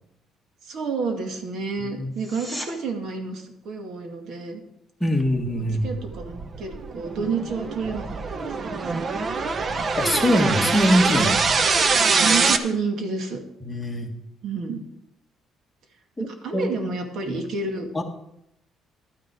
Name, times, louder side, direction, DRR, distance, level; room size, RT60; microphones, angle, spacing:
voice 1, 0.6-4.6 5.6-9.1 12.2-13.4 14.4-14.8 16.2-18.0, right 4 dB, 60° right, 4 dB, 2.1 m, -30 dB
sound 1, 2.1-2.7 14.1-14.2, equal, 15° right, 1.9 m, -36 dB
voice 2, 5.0-5.9 10.0-11.4 13.6-14.1 16.2-16.7 17.3-17.4 17.9-18.0, equal, 10° left, 1 dB, 1.8 m, -22 dB
sound 2, 5.6-12.6, right 4 dB, 35° right, 0.8 m, -23 dB
12.0 x 9.4 x 4.7 m, 0.79 s
cardioid pair, 125°, 0 cm